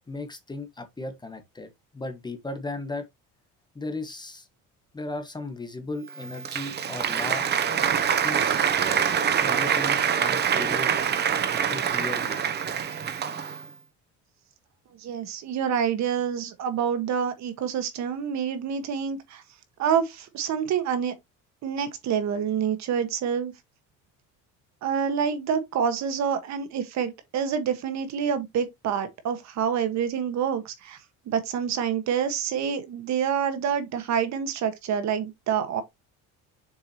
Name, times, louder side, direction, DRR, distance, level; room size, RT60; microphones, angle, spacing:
voice 1, 0.1-3.1 3.7-4.5 4.9-7.5 8.2-8.6 9.4-11.0 11.7-12.4, left 2 dB, 15° left, 1.4 m, -36 dB
Applause, 6.1-13.7, right 7 dB, 30° right, 0.8 m, -25 dB
voice 2, 15.0-19.4 19.8-21.1 21.6-23.5 24.8-31.0 31.3-35.8, right 7 dB, 60° right, 1.5 m, -27 dB
7.0 x 4.9 x 2.9 m
cardioid pair, 135°, 32 cm